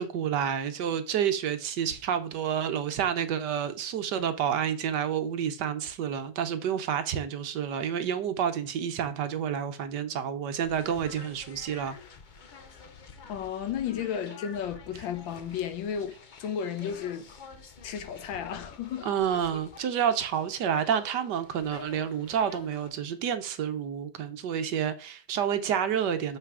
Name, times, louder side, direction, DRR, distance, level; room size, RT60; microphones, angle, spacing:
voice 1, 0.0-12.0 19.0-26.4, right 8 dB, 65° right, 1.4 m, -29 dB
sound 1, 10.6-22.9, left 5 dB, 65° left, 0.4 m, -49 dB
voice 2, 13.2-16.1 16.4-17.3 17.8-19.1, left 8 dB, 85° left, 1.6 m, -33 dB
6.7 x 5.8 x 4.8 m
omnidirectional pair, 2.1 m